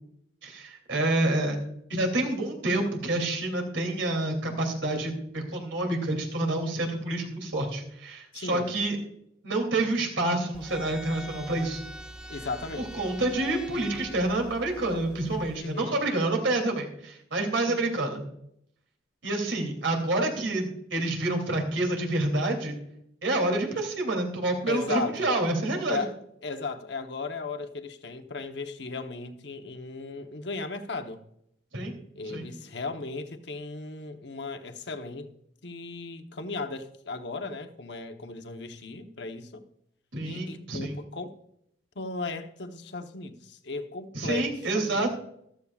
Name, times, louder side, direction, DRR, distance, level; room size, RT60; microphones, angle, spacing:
voice 1, 0.4-1.6 1.9-9.0 9.4-11.8 12.8-18.2 19.2-22.7 23.2-26.0 31.7-31.9 32.3-32.5 40.1-41.0 44.1-45.1, right 2 dB, 85° right, 2.7 m, -28 dB
voice 2, 8.3-8.7 12.3-13.1 15.6-16.0 17.7-17.8 24.7-25.4 25.9-26.2 26.4-31.2 32.1-35.3 35.6-39.6 40.2-41.3 41.9-45.1, left 3 dB, 65° left, 1.0 m, -36 dB
sound 1, 10.5-15.6, right 1 dB, 5° right, 0.5 m, -43 dB
14.0 x 13.5 x 2.4 m
head